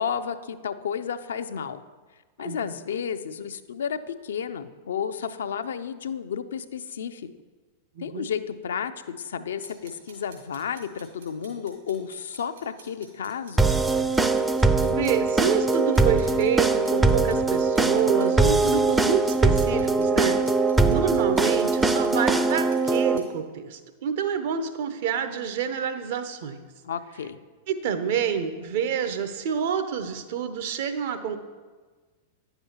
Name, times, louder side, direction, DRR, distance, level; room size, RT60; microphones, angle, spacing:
voice 1, 0.0-1.8 2.4-7.3 8.0-13.6 26.8-27.4, left 7 dB, 70° left, 11 dB, 0.4 m, -32 dB
voice 2, 8.0-8.3 14.8-20.4 20.9-26.7 27.7-31.4, right 7 dB, 55° right, 9 dB, 0.7 m, -28 dB
sound 1, 9.6-23.2, right 5 dB, 70° right, 2.6 m, -50 dB
sound 2, 13.6-23.2, right 3 dB, 10° right, 0.4 m, -22 dB
10.0 x 6.8 x 2.9 m, 1.4 s
figure-of-eight pair, 95°, 0 cm